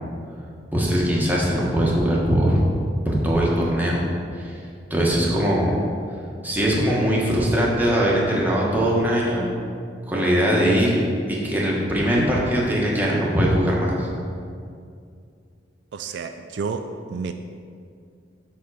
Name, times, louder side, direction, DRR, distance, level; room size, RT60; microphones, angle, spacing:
voice 1, 0.7-2.6 3.0-4.0 4.4-4.5 4.9-5.8 6.4-9.5 10.1-10.9 11.3-14.1, equal, 10° right, -5 dB, 1.3 m, -21 dB
voice 2, 15.9-17.3, right 5 dB, 70° right, 7 dB, 0.3 m, -30 dB
7.2 x 3.8 x 6.3 m, 2.3 s
head